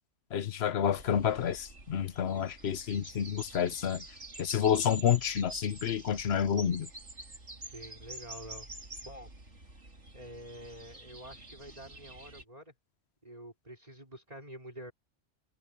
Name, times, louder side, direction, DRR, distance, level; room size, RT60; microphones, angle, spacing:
voice 1, 0.3-4.0 4.4-6.9, left 8 dB, 65° left, 1.0 m, -29 dB
sound 1, 0.9-12.4, right 2 dB, 90° right, 3.8 m, -47 dB
voice 2, 7.6-8.7 9.0-9.3 10.1-12.7 13.2-14.9, equal, 35° right, 5.0 m, -47 dB
omnidirectional pair, 1.2 m